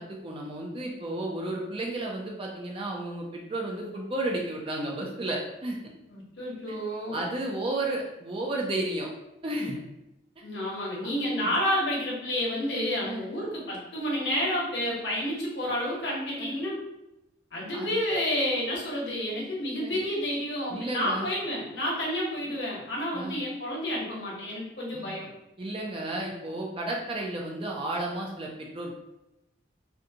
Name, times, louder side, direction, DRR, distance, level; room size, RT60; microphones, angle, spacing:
voice 1, 0.0-5.8 6.7-6.8 7.1-9.1 9.4-9.8 11.4-11.5 13.0-13.3 14.9-15.0 16.4-16.5 17.7-17.9 19.8-20.0 20.7-21.3 23.1-23.4 24.9-25.1 25.6-28.9, right 1 dB, 30° right, -1 dB, 0.4 m, -33 dB
voice 2, 6.1-7.2 10.4-16.8 17.5-25.3, equal, 65° left, -4 dB, 0.9 m, -30 dB
2.6 x 2.2 x 2.7 m, 0.88 s
head